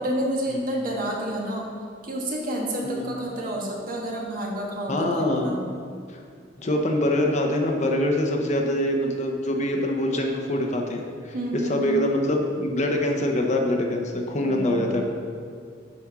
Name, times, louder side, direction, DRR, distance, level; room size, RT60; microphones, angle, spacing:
voice 1, 0.0-1.7 2.0-5.6 11.3-12.1 14.4-15.0, equal, 50° right, -1 dB, 1.3 m, -29 dB
voice 2, 4.9-5.5 6.6-11.3 11.7-15.0, left 1 dB, 40° left, 2 dB, 0.8 m, -24 dB
8.3 x 4.3 x 6.1 m, 2.2 s
head